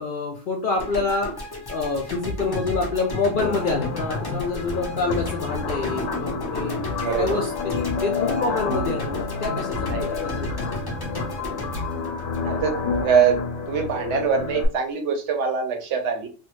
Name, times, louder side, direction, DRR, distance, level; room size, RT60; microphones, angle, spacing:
voice 1, 0.0-6.8 7.2-10.7 11.1-11.2, left 3 dB, 65° left, 1 dB, 0.5 m, -27 dB
sound 1, 0.8-13.0, left 1 dB, 25° left, 0.7 m, -33 dB
sound 2, 3.4-14.7, left 4 dB, 90° left, 1.0 m, -29 dB
voice 2, 7.0-7.4 9.9-10.3 12.4-12.7 13.0-13.4 13.7-16.3, right 6 dB, 70° right, 5 dB, 0.9 m, -23 dB
3.3 x 2.1 x 3.0 m, 0.37 s
omnidirectional pair, 1.3 m